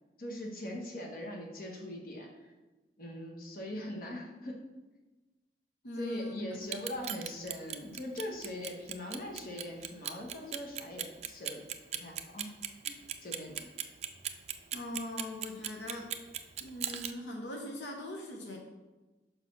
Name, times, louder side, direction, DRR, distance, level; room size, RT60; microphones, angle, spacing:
voice 1, 0.2-2.5 3.0-4.6 6.0-11.6 12.0-12.5 12.8-13.6, left 1 dB, 55° left, 0 dB, 1.1 m, -41 dB
voice 2, 5.8-6.6 13.5-13.6 14.7-16.1 16.6-18.6, left 1 dB, 85° left, 1 dB, 0.9 m, -40 dB
Clock, 6.6-17.1, right 10 dB, 35° right, 0.3 m, -38 dB
5.2 x 4.1 x 6.0 m, 1.2 s
head